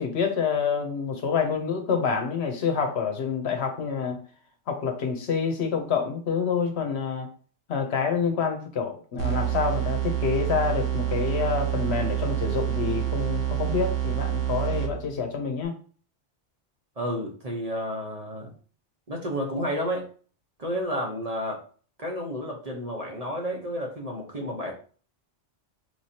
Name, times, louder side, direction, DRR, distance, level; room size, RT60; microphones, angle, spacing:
voice 1, 0.0-4.2 4.7-7.3 7.7-15.7, left 6 dB, 65° left, 5 dB, 1.0 m, -27 dB
sound 1, 9.2-15.2, right 13 dB, 90° right, 1.2 m, -27 dB
voice 2, 17.0-18.5 19.1-20.1 20.6-21.6 22.0-24.7, equal, 35° right, -1 dB, 0.9 m, -31 dB
4.7 x 3.1 x 2.8 m, 0.40 s
omnidirectional pair, 1.2 m